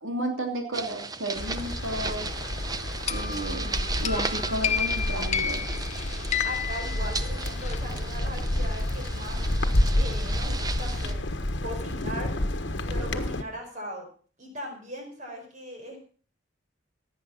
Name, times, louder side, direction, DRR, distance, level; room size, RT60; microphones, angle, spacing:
voice 1, 0.0-2.3 3.1-3.7 4.0-5.6, right 1 dB, 90° right, 3 dB, 2.9 m, -32 dB
sound 1, 0.7-11.1, right 4 dB, 20° right, 0.7 m, -36 dB
sound 2, 1.4-13.4, left 1 dB, 60° left, 1.4 m, -29 dB
sound 3, 3.1-7.8, left 7 dB, 35° left, 0.7 m, -31 dB
voice 2, 6.4-9.4 9.9-11.2 11.6-12.3 12.9-14.1 14.4-16.0, equal, 35° right, 2 dB, 4.8 m, -39 dB
17.0 x 9.1 x 5.8 m, 0.42 s
head